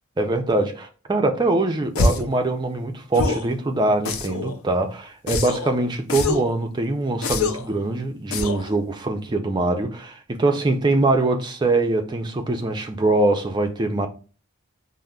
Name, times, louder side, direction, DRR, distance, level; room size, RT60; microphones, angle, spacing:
voice 1, 0.2-14.1, right 2 dB, 20° right, 0.3 m, -23 dB
sound 1, 1.9-2.3 3.1-3.5 4.0-4.5 5.3-5.7 6.1-6.5 7.2-7.7 8.3-8.7, left 3 dB, 75° left, 0.4 m, -24 dB
5.0 x 2.0 x 2.2 m
head